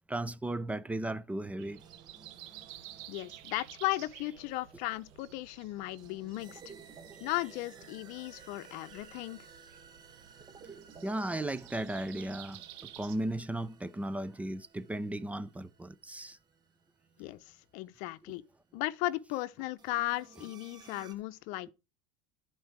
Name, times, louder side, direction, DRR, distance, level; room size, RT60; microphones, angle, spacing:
voice 1, 0.1-1.8 11.0-16.4, right 1 dB, 10° right, 0.5 m, -36 dB
Breathing, 1.6-13.2, right 12 dB, 70° right, 1.2 m, -53 dB
sound 1, 1.8-17.9 19.8-21.1, right 5 dB, 30° right, 1.1 m, -56 dB
voice 2, 3.1-6.6 7.2-9.4 17.2-18.4 18.7-21.7, left 18 dB, 65° left, 0.6 m, -36 dB
12.0 x 4.5 x 4.6 m
supercardioid pair, 105°, 14 cm